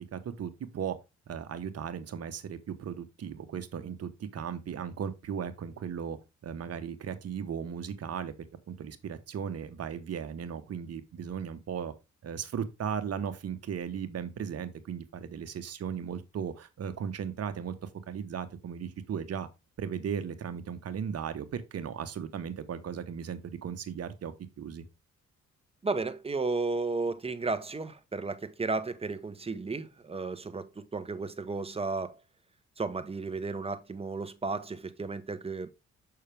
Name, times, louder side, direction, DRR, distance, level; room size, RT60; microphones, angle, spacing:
voice 1, 0.1-1.0 1.3-6.2 6.4-8.3 8.7-11.9 12.2-19.5 19.8-24.8, right 7 dB, 55° right, 1.2 m, -36 dB
voice 2, 25.8-32.2 32.8-35.7, right 3 dB, 20° right, 1.0 m, -33 dB
6.5 x 5.8 x 3.4 m
cardioid pair, 90°, 30 cm